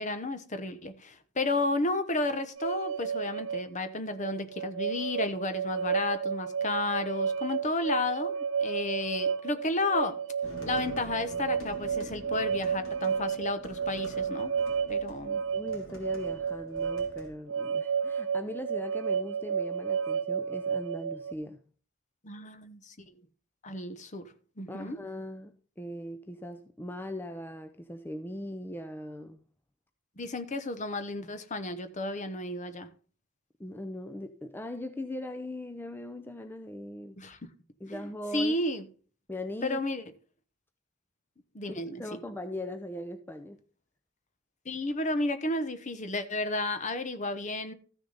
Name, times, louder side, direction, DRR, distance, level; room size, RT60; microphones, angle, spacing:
voice 1, 0.0-10.2 10.7-14.5 14.9-15.4 22.2-23.1 23.6-25.0 30.2-32.9 37.2-37.4 37.9-38.8 39.6-40.0 41.5-42.2 44.6-47.7, left 2 dB, 40° left, 1.0 m, -32 dB
sound 1, 2.6-21.3, right 6 dB, 85° right, 0.6 m, -32 dB
sound 2, 10.4-17.3, right 1 dB, 85° left, 3.2 m, -47 dB
voice 2, 15.5-21.6 24.7-29.4 33.6-37.2 37.8-38.6 39.3-39.8 41.7-43.6, left 1 dB, 10° left, 0.5 m, -40 dB
14.0 x 6.4 x 4.0 m
head